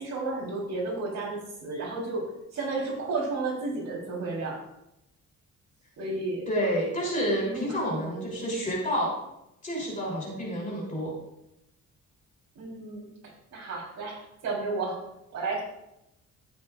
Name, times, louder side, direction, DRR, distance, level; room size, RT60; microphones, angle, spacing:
voice 1, 0.0-4.6 6.0-6.5 7.4-8.4 12.6-13.1 13.5-14.2 14.4-15.0 15.3-15.6, right 3 dB, 60° right, -3 dB, 3.9 m, -32 dB
voice 2, 6.5-9.1 9.6-11.1, equal, 25° left, -3 dB, 3.4 m, -29 dB
12.5 x 8.9 x 2.5 m, 0.85 s
cardioid pair, 150°, 30 cm